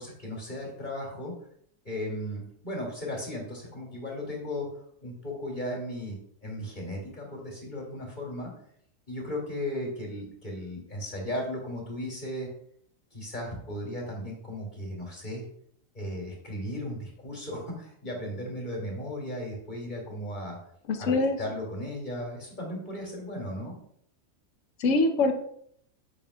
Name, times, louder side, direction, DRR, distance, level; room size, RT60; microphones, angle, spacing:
voice 1, 0.0-1.3 1.8-4.7 5.0-8.5 9.1-12.5 13.1-15.4 15.9-20.6 21.0-23.8, left 1 dB, 35° left, -2 dB, 2.5 m, -36 dB
voice 2, 20.9-21.4 24.8-25.3, left 3 dB, 65° left, 6 dB, 1.2 m, -23 dB
9.2 x 6.5 x 2.3 m, 0.66 s
omnidirectional pair, 1.4 m